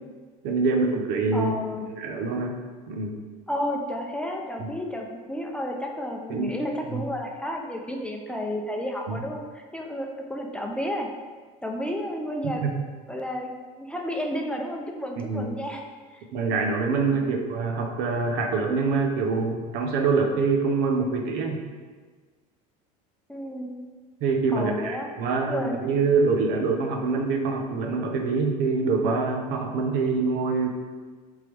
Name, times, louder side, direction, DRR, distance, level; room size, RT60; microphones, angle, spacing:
voice 1, 0.4-1.5 1.9-2.6 2.9-3.2 4.6-4.7 6.3-6.5 6.9-7.0 9.1-9.2 12.6-12.7 15.3-15.5 16.3-21.6 24.2-30.7, right 4 dB, 65° right, 3 dB, 1.0 m, -25 dB
voice 2, 1.3-1.9 3.5-11.1 11.6-12.6 13.1-15.8 16.1-16.2 17.2-17.4 23.3-23.8 24.5-25.1 25.5-25.8, equal, 5° left, 1 dB, 0.7 m, -31 dB
7.4 x 3.7 x 3.4 m, 1.4 s
supercardioid pair, 100°, 19 cm